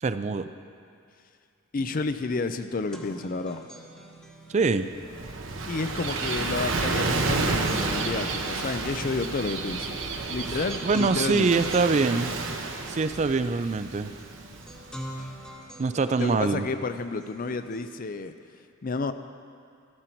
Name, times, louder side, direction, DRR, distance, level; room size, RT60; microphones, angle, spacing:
voice 1, 0.0-0.5 4.5-4.9 10.8-12.3 12.9-14.1 15.8-16.7, right 4 dB, 35° right, 11 dB, 0.4 m, -24 dB
voice 2, 1.7-3.7 5.7-10.0 10.3-11.5 16.2-18.3 18.8-19.1, left 3 dB, 45° left, 10 dB, 0.5 m, -30 dB
sound 1, 2.0-2.1 2.4-17.9, equal, 5° left, 1.1 m, -46 dB
Gull seagull / Waves surf, 4.8-15.3, right 3 dB, 70° right, 1.0 m, -31 dB
13.0 x 13.0 x 4.5 m, 2.4 s
head